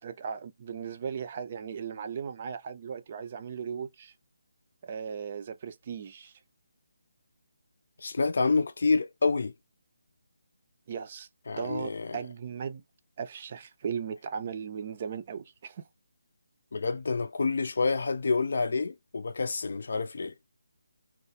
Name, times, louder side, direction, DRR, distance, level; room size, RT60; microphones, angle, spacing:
voice 1, 0.0-4.1 4.8-6.3 10.9-11.3 11.6-12.8 13.2-15.9, right 7 dB, 35° right, 0.4 m, -37 dB
voice 2, 8.0-9.5 11.5-12.2 16.7-20.3, left 4 dB, 60° left, 0.4 m, -28 dB
2.3 x 2.0 x 2.7 m
figure-of-eight pair, 160°, 0 cm